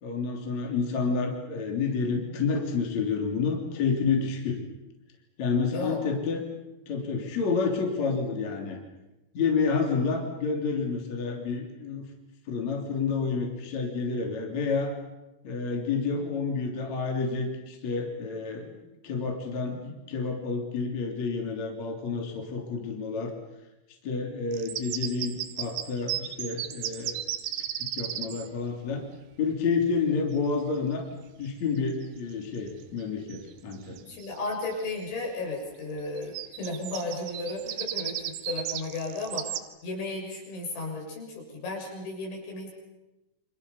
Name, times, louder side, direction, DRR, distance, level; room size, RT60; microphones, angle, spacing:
voice 1, 0.0-4.6 5.4-6.4 6.9-8.8 9.3-12.1 12.5-14.9 15.4-18.8 19.0-23.3 24.0-27.2 27.8-29.0 29.4-31.0 31.4-34.0, left 4 dB, 40° left, 1 dB, 4.0 m, -29 dB
voice 2, 5.7-6.0 34.1-39.6 39.8-42.7, left 2 dB, 70° left, 0 dB, 9.7 m, -34 dB
sound 1, 24.5-28.5 31.9-32.1 32.6-33.0 33.3-33.4 33.7-34.8 36.2-39.6, right 12 dB, 85° right, 3.8 m, -34 dB
30.0 x 26.5 x 7.2 m, 1.0 s
omnidirectional pair, 5.6 m